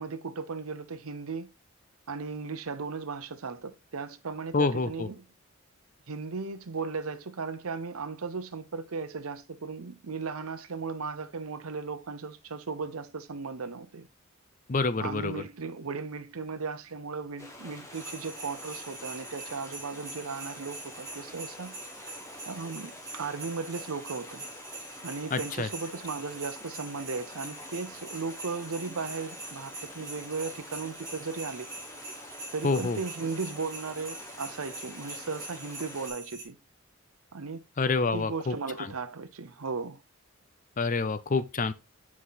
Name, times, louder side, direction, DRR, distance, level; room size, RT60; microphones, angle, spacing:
voice 1, 0.0-1.5 2.1-5.2 6.1-14.1 15.0-21.8 22.5-24.5 25.0-31.7 32.5-36.6 37.3-37.6 38.1-40.0, right 4 dB, 90° right, 0.7 m, -36 dB
voice 2, 4.5-5.1 14.7-15.4 25.3-25.7 32.6-33.0 37.8-38.5 40.8-41.7, left 3 dB, 40° left, 0.5 m, -27 dB
sound 1, 17.4-36.1, left 1 dB, 15° left, 1.2 m, -47 dB
sound 2, 17.9-36.4, right 2 dB, 15° right, 2.3 m, -44 dB
5.8 x 4.9 x 4.0 m
head